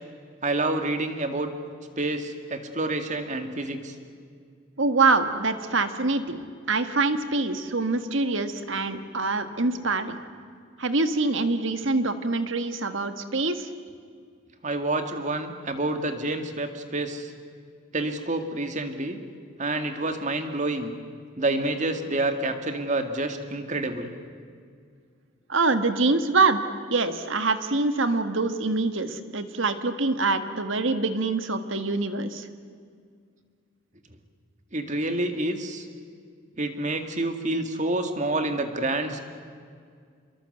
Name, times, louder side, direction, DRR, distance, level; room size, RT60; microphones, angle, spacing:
voice 1, 0.4-1.5 2.0-3.9 14.6-17.3 17.9-19.2 19.6-20.9 21.4-24.1 34.7-35.9 36.6-39.2, right 2 dB, 35° right, 7 dB, 2.1 m, -28 dB
voice 2, 4.8-10.2 10.8-13.7 25.5-26.6 26.9-32.5, right 3 dB, 65° right, 9 dB, 1.6 m, -25 dB
28.0 x 23.0 x 8.0 m, 2.1 s
head